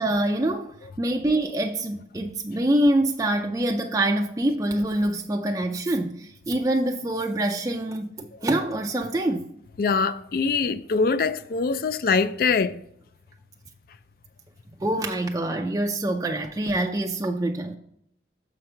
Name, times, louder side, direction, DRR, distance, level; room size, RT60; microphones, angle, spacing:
voice 1, 0.0-9.5 14.8-17.8, right 1 dB, 20° right, 0.4 m, -25 dB
voice 2, 9.8-12.7, left 4 dB, 55° left, 0.4 m, -23 dB
7.0 x 5.1 x 4.4 m
head